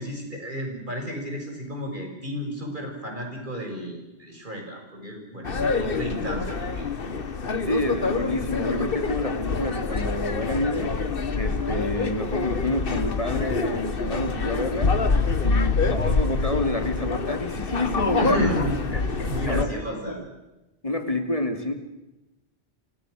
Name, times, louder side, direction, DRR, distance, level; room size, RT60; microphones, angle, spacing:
voice 1, 0.0-6.9 18.1-20.2, equal, 50° right, 2 dB, 6.4 m, -32 dB
sound 1, 5.4-19.7, left 4 dB, 55° left, 1.5 m, -26 dB
voice 2, 7.6-11.0 11.3-14.9 15.4-18.5 18.9-19.0 19.5-20.2 20.8-21.7, left 1 dB, 35° left, 6 dB, 3.0 m, -28 dB
30.0 x 25.5 x 6.6 m, 0.99 s
omnidirectional pair, 1.1 m